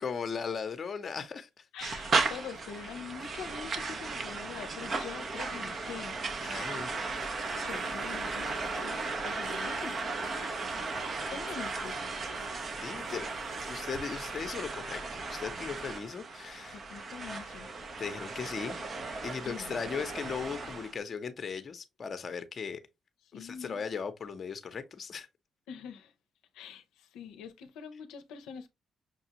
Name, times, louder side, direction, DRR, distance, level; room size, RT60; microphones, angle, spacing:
voice 1, 0.0-1.6 3.2-3.3 6.4-6.9 12.8-13.3 13.6-16.8 18.0-18.8 19.2-22.8 23.3-25.3, left 6 dB, 45° left, 0.7 m, -37 dB
voice 2, 1.7-6.1 7.6-10.0 11.3-12.1 16.7-17.7 19.4-20.0 23.3-23.8 25.7-26.1 26.5-28.7, left 7 dB, 90° left, 0.5 m, -44 dB
sound 1, 1.8-20.9, right 3 dB, 45° right, 0.8 m, -36 dB
sound 2, 6.3-14.4, right 4 dB, 75° right, 0.9 m, -52 dB
5.9 x 2.3 x 2.8 m
cardioid pair, 90°, 0 cm